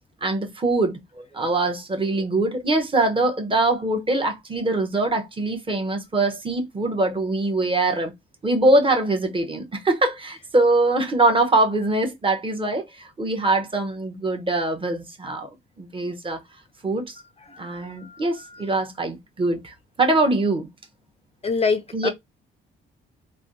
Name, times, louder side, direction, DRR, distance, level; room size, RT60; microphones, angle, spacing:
voice 1, 0.2-8.1 8.4-15.5 15.8-16.4 16.8-17.2 17.6-20.7 21.9-22.1, right 2 dB, 25° right, 0.9 m, -23 dB
voice 2, 21.4-22.1, left 4 dB, 30° left, 0.4 m, -24 dB
3.4 x 2.5 x 2.6 m
cardioid pair, 90°, 20 cm